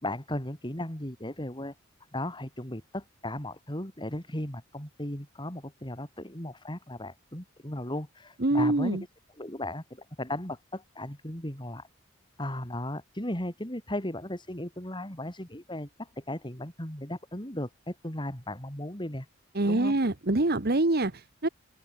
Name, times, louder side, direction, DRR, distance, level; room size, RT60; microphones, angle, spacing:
voice 1, 0.0-1.7 2.1-9.0 9.4-11.9 12.4-19.3 19.7-20.0, left 1 dB, 20° left, 4.6 m, -36 dB
voice 2, 8.4-9.0 19.5-21.5, right 2 dB, 50° right, 1.4 m, -25 dB
head